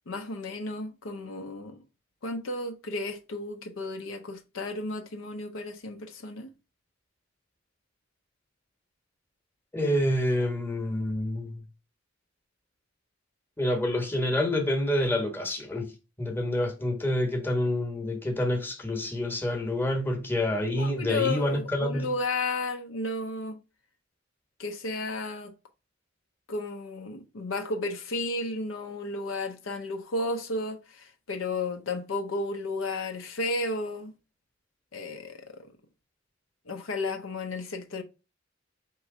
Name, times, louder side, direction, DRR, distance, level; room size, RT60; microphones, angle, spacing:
voice 1, 0.1-1.8 2.2-6.5 20.8-23.6 24.6-25.5 26.5-34.1 34.9-35.7 36.7-38.0, left 2 dB, 80° left, 0.7 m, -33 dB
voice 2, 9.7-11.6 13.6-15.9 16.2-22.1, left 1 dB, 10° left, 1.0 m, -27 dB
4.5 x 3.0 x 3.6 m
head